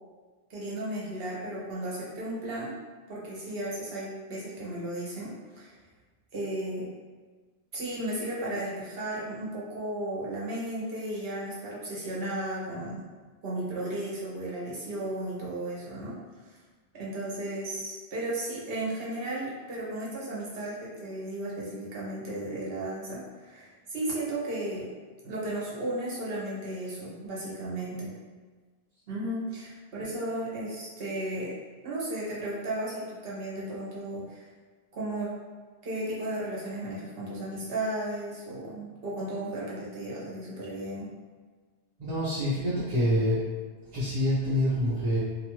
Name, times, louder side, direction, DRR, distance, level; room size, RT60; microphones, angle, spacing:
voice 1, 0.5-2.7 3.1-5.3 5.6-5.7 6.3-6.8 7.7-13.0 13.4-16.1 16.9-24.8 25.2-28.1 29.1-31.5 31.8-34.5 34.9-35.3 35.8-41.1, right 1 dB, 65° right, -6 dB, 1.0 m, -34 dB
voice 2, 42.0-43.4 43.9-45.2, equal, 40° right, -12 dB, 0.8 m, -26 dB
2.7 x 2.4 x 2.9 m, 1.4 s
omnidirectional pair, 1.1 m